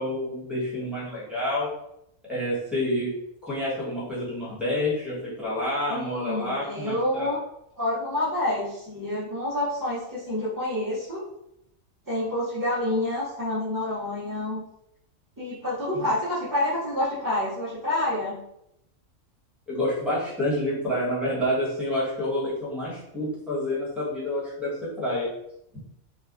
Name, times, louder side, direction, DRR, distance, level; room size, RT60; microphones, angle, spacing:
voice 1, 0.0-1.7 2.3-3.1 3.4-7.3 15.9-16.0 19.7-25.3, left 1 dB, ahead, -8 dB, 0.8 m, -28 dB
voice 2, 5.9-7.4 7.8-11.3 12.1-14.6 15.4-18.4, left 1 dB, 30° right, -11 dB, 0.3 m, -28 dB
2.8 x 2.1 x 2.4 m, 0.79 s
omnidirectional pair, 1.4 m